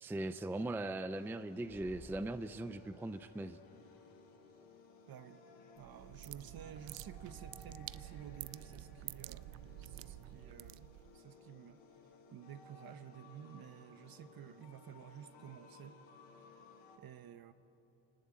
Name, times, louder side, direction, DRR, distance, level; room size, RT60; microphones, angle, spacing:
voice 1, 0.0-3.6, right 2 dB, 5° right, 12 dB, 0.5 m, -39 dB
sound 1, 1.1-17.0, left 4 dB, 70° left, 4.8 m, -60 dB
sound 2, 1.6-3.2, left 2 dB, 20° left, 1.6 m, -57 dB
voice 2, 5.1-5.4 5.8-9.5 9.8-10.9 11.1-11.8 12.3-16.0 17.0-17.5, right 9 dB, 50° right, 12 dB, 1.1 m, -52 dB
sound 3, 5.8-11.2, right 17 dB, 65° right, 0.6 m, -49 dB
27.5 x 19.0 x 8.6 m, 3.0 s
cardioid pair, 120°, 46 cm